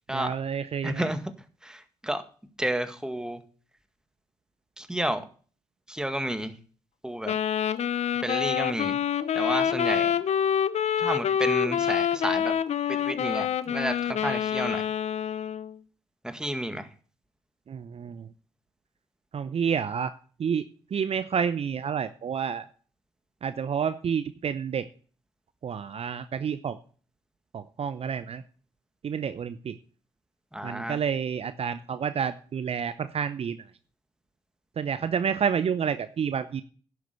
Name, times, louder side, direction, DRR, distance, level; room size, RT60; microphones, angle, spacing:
voice 1, 0.1-1.1 17.7-18.3 19.3-20.1 20.4-20.7 20.9-22.7 23.4-24.8 25.6-26.8 27.5-28.4 29.0-29.7 30.6-33.6 34.8-36.6, right 7 dB, 45° right, 13 dB, 0.7 m, -29 dB
voice 2, 0.8-1.2 1.6-2.2 2.6-3.4 4.8-5.2 5.9-6.5 7.0-7.3 8.2-9.0 9.3-10.1 11.0-12.5 12.9-14.8 16.2-16.9 30.5-31.0, right 1 dB, 5° right, 9 dB, 1.9 m, -31 dB
Wind instrument woodwind instrument, 7.2-15.7, left 9 dB, 55° left, 0.7 m, -27 dB
11.0 x 7.9 x 6.7 m, 0.42 s
hypercardioid pair, 40°, 14 cm